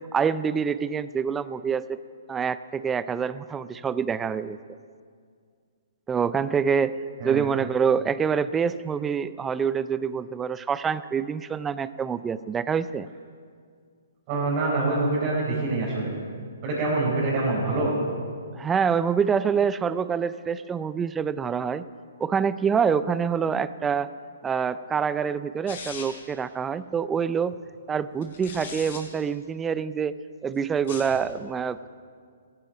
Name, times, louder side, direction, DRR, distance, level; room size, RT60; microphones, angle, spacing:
voice 1, 0.1-2.0 2.3-4.6 6.1-7.0 7.2-13.1 18.5-21.8 22.2-24.1 24.4-27.6 27.9-30.1 30.4-31.9, right 6 dB, 15° right, 15 dB, 0.5 m, -26 dB
voice 2, 14.3-16.1 16.6-17.9, right 2 dB, 35° right, -7 dB, 4.6 m, -25 dB
sound 1, 25.7-26.3 28.2-29.0 30.7-31.2, left 5 dB, 55° left, 4.4 m, -39 dB
16.5 x 14.5 x 5.2 m, 2.1 s
hypercardioid pair, 130°, 0 cm